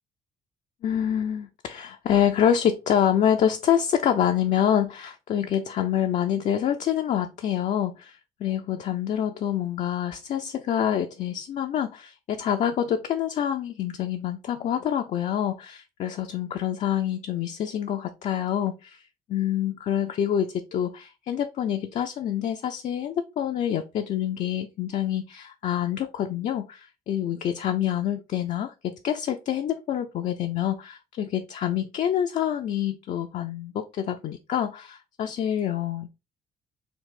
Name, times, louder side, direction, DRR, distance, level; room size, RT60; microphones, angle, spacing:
voice 1, 0.8-36.1, left 10 dB, 40° left, 0.4 m, -26 dB
3.8 x 2.5 x 3.3 m
figure-of-eight pair, 45°, 19 cm